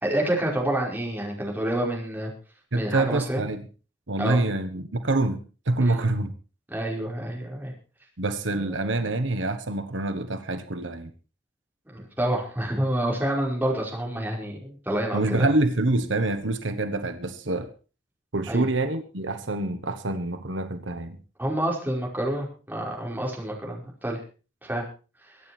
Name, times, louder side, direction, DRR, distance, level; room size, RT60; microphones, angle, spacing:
voice 1, 0.0-2.3 2.7-3.4 4.2-4.4 5.8-6.0 6.7-7.7 8.5-9.1 11.9-15.5 18.5-18.7 21.4-24.2 24.6-24.8, right 1 dB, 10° right, -2 dB, 5.1 m, -28 dB
voice 2, 2.7-3.6 4.1-5.4 5.7-6.3 8.2-11.1 15.1-17.7 18.3-21.2, right 2 dB, 75° right, 8 dB, 1.3 m, -26 dB
23.5 x 9.3 x 4.5 m, 0.35 s
head